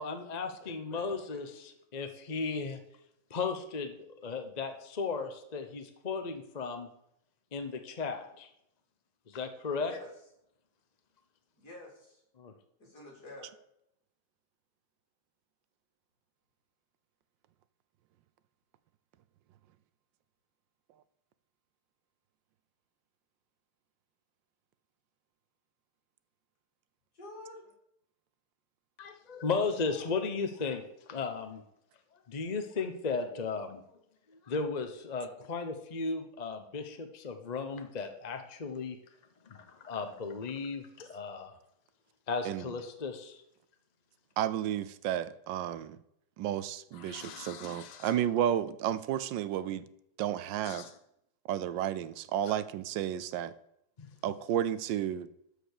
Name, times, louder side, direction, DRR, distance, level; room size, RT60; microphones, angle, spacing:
voice 1, 0.0-2.8 3.3-6.9 7.5-8.5 9.3-9.9 12.4-12.5 29.0-31.6 32.3-33.8 34.5-39.0 39.5-41.6 42.3-43.4 46.9-48.2 50.6-50.9 52.5-52.6 54.0-54.1, left 4 dB, 40° left, 6 dB, 0.6 m, -36 dB
voice 2, 0.6-1.6 9.8-10.1 11.6-12.2 12.8-13.5 27.1-27.7, left 2 dB, 60° left, -3 dB, 4.0 m, -49 dB
voice 3, 44.4-46.0 46.4-49.8 50.2-50.8 51.5-53.5 54.2-55.3, right 11 dB, 85° right, 15 dB, 1.3 m, -32 dB
12.5 x 5.1 x 6.6 m, 0.77 s
omnidirectional pair, 2.0 m